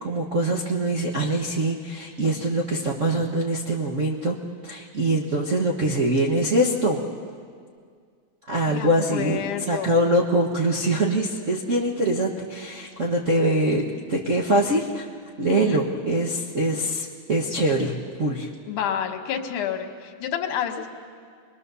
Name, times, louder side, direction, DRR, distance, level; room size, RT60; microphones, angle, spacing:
voice 1, 0.0-7.0 8.5-9.4 9.7-15.1 15.4-17.9 18.2-18.5, right 1 dB, 50° right, -4 dB, 0.8 m, -23 dB
voice 2, 8.7-9.9 15.5-15.8 18.7-20.9, left 8 dB, 85° left, 5 dB, 2.8 m, -29 dB
26.5 x 21.0 x 6.9 m, 2.1 s
omnidirectional pair, 3.4 m